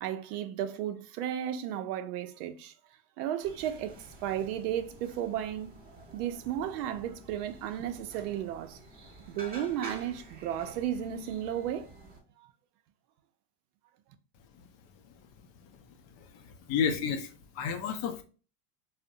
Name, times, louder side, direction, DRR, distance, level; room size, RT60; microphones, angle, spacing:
voice 1, 0.0-2.7 3.2-5.7 6.1-8.8 9.3-11.9, right 10 dB, 65° right, 0.5 m, -34 dB
sound 1, 3.4-12.2, right 2 dB, 20° right, 0.6 m, -49 dB
voice 2, 16.2-18.2, left 7 dB, 50° left, 0.5 m, -32 dB
2.6 x 2.1 x 2.5 m
supercardioid pair, 115°, 49 cm